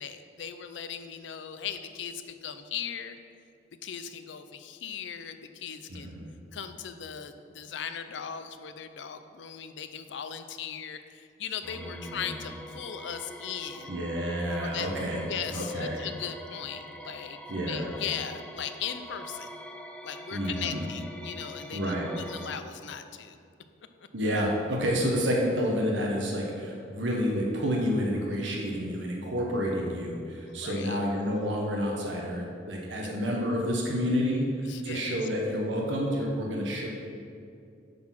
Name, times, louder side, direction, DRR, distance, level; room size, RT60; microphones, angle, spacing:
voice 1, 0.0-3.2 3.8-6.1 6.5-13.9 14.6-14.9 15.3-17.4 17.7-19.5 20.0-23.4 30.5-31.0 34.6-35.2, left 8 dB, 65° left, 9 dB, 0.5 m, -38 dB
voice 2, 5.9-6.3 11.7-12.2 13.9-15.2 15.5-16.0 17.5-17.9 20.3-20.9 21.7-22.1 24.1-36.9, equal, 70° right, -1 dB, 1.0 m, -29 dB
sound 1, 11.6-22.6, left 1 dB, 5° left, 0.3 m, -44 dB
8.6 x 4.0 x 5.9 m, 2.4 s
head